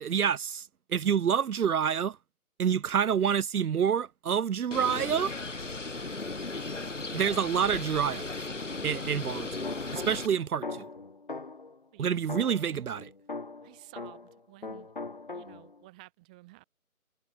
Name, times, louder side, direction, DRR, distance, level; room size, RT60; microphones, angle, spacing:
voice 1, 0.0-2.2 2.6-5.3 7.1-8.3 8.8-9.6 9.9-10.9 12.0-13.1, right 8 dB, 80° right, 0.6 m, -28 dB
Bird, 4.7-10.3, left 3 dB, 55° left, 3.0 m, -36 dB
sound 1, 9.6-11.8 12.3-14.4 14.6-15.8, left 3 dB, 35° left, 4.0 m, -41 dB
voice 2, 12.4-12.8 13.6-14.9 15.3-16.6, right 21 dB, 5° right, 5.5 m, -53 dB
figure-of-eight pair, 175°, 44 cm